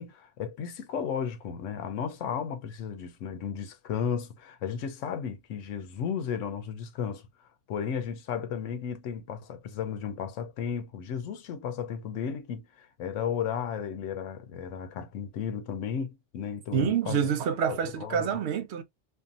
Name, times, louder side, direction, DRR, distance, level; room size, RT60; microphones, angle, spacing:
voice 1, 0.0-17.2 17.7-18.4, left 7 dB, 85° left, 0.9 m, -34 dB
voice 2, 16.7-18.8, right 7 dB, 70° right, 0.8 m, -27 dB
2.7 x 2.4 x 2.4 m
omnidirectional pair, 1.3 m